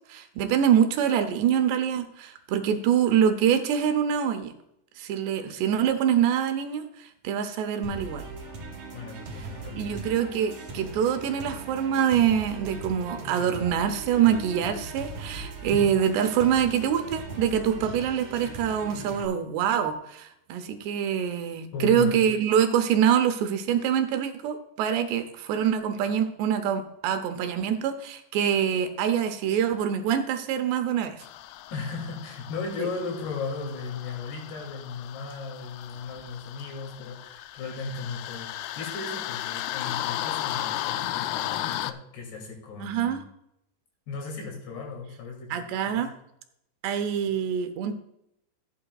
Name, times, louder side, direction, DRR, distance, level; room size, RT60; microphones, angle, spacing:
voice 1, 0.1-4.5 5.0-8.2 9.8-31.2 42.8-43.2 45.5-46.1 46.8-47.9, right 8 dB, 80° right, 8 dB, 2.8 m, -25 dB
sound 1, 7.8-19.3, right 3 dB, 55° right, 3.4 m, -39 dB
voice 2, 8.9-10.0 15.7-15.8 21.7-22.2 31.7-43.2 44.1-45.6 45.9-46.1 47.3-47.4, left 4 dB, 65° left, 1 dB, 4.5 m, -36 dB
sound 2, 31.2-41.9, left 14 dB, 85° left, 2.2 m, -35 dB
14.5 x 8.8 x 2.3 m, 0.79 s
omnidirectional pair, 5.1 m